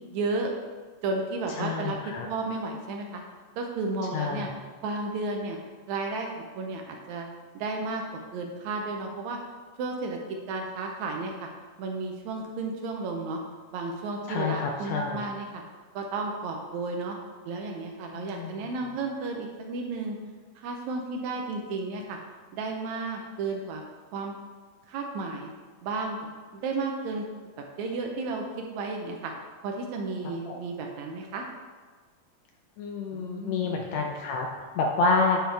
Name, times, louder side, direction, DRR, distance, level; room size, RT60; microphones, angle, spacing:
voice 1, 0.1-0.5 1.0-3.2 3.6-4.5 4.8-5.6 5.9-7.3 7.6-8.0 8.3-9.4 9.8-10.2 10.5-11.5 11.8-13.4 13.7-15.6 16.0-17.2 17.5-20.2 20.6-22.2 22.5-23.8 24.1-24.3 24.9-25.5 25.8-26.2 26.5-27.2 27.8-29.3 29.6-31.4 33.1-33.8, right 3 dB, 75° right, 2 dB, 1.8 m, -33 dB
voice 2, 1.6-2.3 4.1-4.5 14.3-15.2 18.1-18.6 30.5-30.6 32.8-35.4, left 3 dB, 90° left, 1 dB, 1.4 m, -28 dB
10.0 x 4.6 x 3.4 m, 1.5 s
omnidirectional pair, 3.7 m